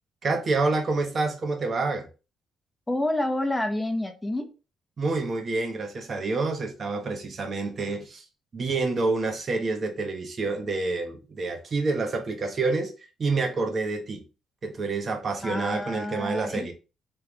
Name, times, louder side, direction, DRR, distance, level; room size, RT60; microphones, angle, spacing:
voice 1, 0.2-2.1 5.0-8.2 8.5-12.9 13.2-14.2 14.6-16.7, right 3 dB, 45° right, 1.0 m, -28 dB
voice 2, 2.9-4.5 15.4-16.7, left 1 dB, 10° left, 0.8 m, -28 dB
3.3 x 3.3 x 3.0 m
cardioid pair, 90°, 0 cm